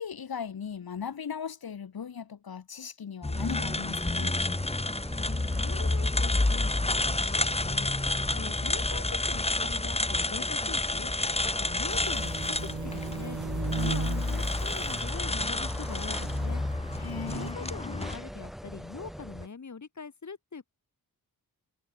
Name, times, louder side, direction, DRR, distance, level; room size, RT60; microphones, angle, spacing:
voice 1, 0.0-4.4 13.8-14.5 17.0-18.1, left 7 dB, 70° left, 3.7 m, -38 dB
sound 1, 3.2-18.2, left 2 dB, 15° left, 2.2 m, -30 dB
sound 2, 3.3-19.5, equal, ahead, 3.2 m, -42 dB
voice 2, 5.2-7.9 8.3-11.1 11.6-13.4 13.8-16.6 17.1-20.7, left 5 dB, 50° left, 6.5 m, -43 dB
sound 3, 11.9-17.5, right 5 dB, 50° right, 7.8 m, -38 dB
wide cardioid pair, 120°, 38 cm